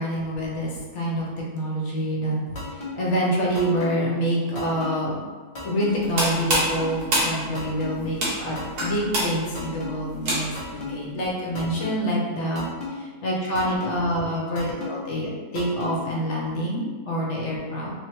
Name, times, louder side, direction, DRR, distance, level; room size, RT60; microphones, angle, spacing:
voice 1, 0.0-2.4 2.7-5.2 5.6-17.9, equal, 55° left, -4 dB, 1.0 m, -27 dB
sound 1, 2.6-2.9 3.5-3.9 4.6-4.9 5.6-5.9 6.6-6.9 7.6-7.9 8.6-8.9 9.6-9.9 10.6-10.9 11.6-11.9 12.6-12.9 13.6-13.9 14.6-14.9 15.6-15.9, left 4 dB, 35° left, 0.6 m, -34 dB
sound 2, 5.9-10.8, right 1 dB, 75° right, 1.5 m, -27 dB
3.6 x 3.1 x 3.0 m, 1.5 s
omnidirectional pair, 1.7 m